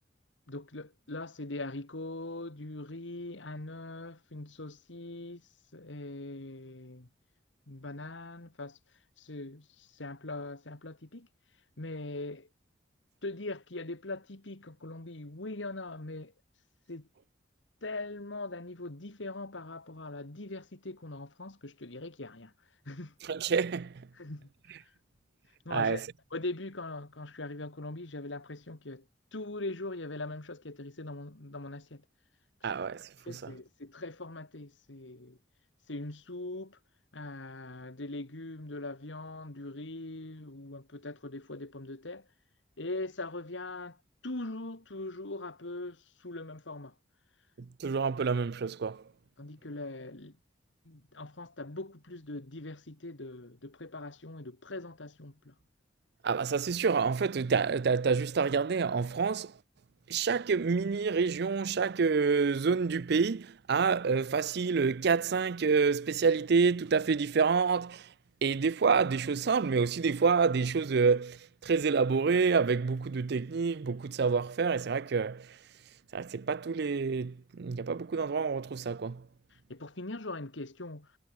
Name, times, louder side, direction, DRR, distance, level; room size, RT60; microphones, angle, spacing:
voice 1, 0.5-5.4 5.7-7.1 7.7-8.8 9.2-11.3 11.8-12.5 13.2-16.3 16.9-17.1 17.8-22.5 22.9-23.1 24.2-24.5 25.7-26.0 26.3-29.0 29.3-32.0 33.3-35.4 35.9-36.8 37.1-42.3 42.8-44.0 44.2-46.9 49.4-50.4 50.8-55.5 79.7-81.1, left 2 dB, 80° left, 2.1 m, -41 dB
voice 2, 23.2-24.1 25.7-26.0 32.6-33.5 47.6-49.0 56.2-59.5 60.1-68.1 68.4-75.6 76.1-79.2, right 5 dB, 60° right, 0.5 m, -28 dB
head